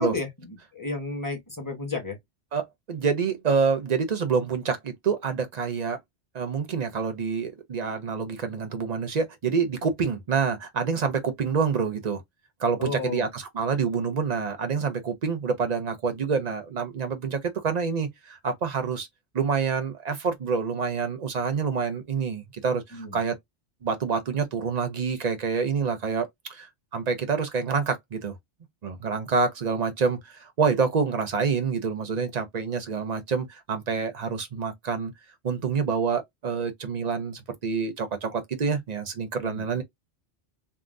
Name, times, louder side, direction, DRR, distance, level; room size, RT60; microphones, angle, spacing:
voice 1, 0.0-2.2 12.8-13.2 22.9-23.2 39.4-39.7, left 3 dB, 15° left, 1.2 m, -32 dB
voice 2, 2.5-6.0 6.3-12.2 12.6-19.1 19.3-23.4 23.8-28.3 28.8-35.1 35.4-39.8, right 5 dB, 45° right, 0.6 m, -27 dB
3.6 x 2.1 x 2.5 m
omnidirectional pair, 1.2 m